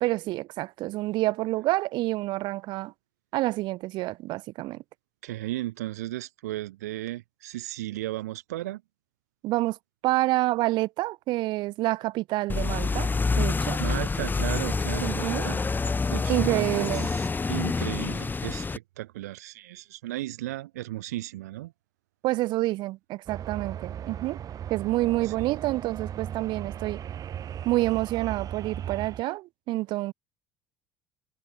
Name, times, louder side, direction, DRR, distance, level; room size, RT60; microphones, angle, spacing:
voice 1, 0.0-2.9 3.3-4.8 9.4-9.8 10.0-13.1 13.4-13.8 15.0-15.5 16.3-17.1 22.2-24.4 24.7-27.0 27.7-30.1, right 18 dB, 65° right, 1.7 m, -28 dB
voice 2, 5.2-8.8 13.8-15.6 16.1-21.7 25.2-25.3, right 16 dB, 85° right, 1.4 m, -35 dB
sound 1, 12.5-18.8, left 4 dB, 20° left, 2.6 m, -27 dB
sound 2, 23.3-29.2, right 9 dB, 45° right, 1.3 m, -37 dB
hypercardioid pair, 75°, 8 cm